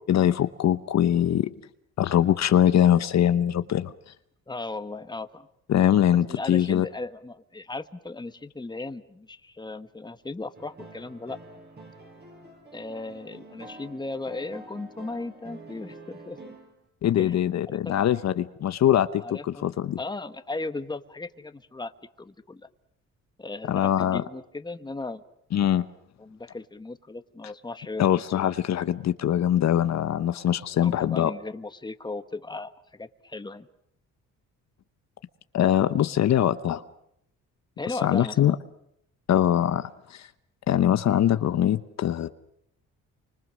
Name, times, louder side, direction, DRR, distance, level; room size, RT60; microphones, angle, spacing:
voice 1, 0.1-1.5 2.0-3.9 5.7-6.8 17.0-20.0 23.7-24.2 25.5-25.8 28.0-31.3 35.5-36.8 38.0-38.5 39.3-40.3 40.7-42.3, left 11 dB, 60° left, 12 dB, 1.0 m, -22 dB
voice 2, 4.5-5.5 6.3-11.4 12.7-16.5 17.2-17.4 17.7-18.0 19.2-19.7 20.0-21.9 22.2-22.6 23.4-25.2 26.2-28.1 30.8-33.7 37.8-38.6, left 3 dB, 15° left, 10 dB, 1.4 m, -36 dB
sound 1, 10.5-16.8, right 2 dB, 35° right, 7.3 m, -47 dB
29.5 x 25.5 x 6.4 m, 0.75 s
cardioid pair, 90°, 30 cm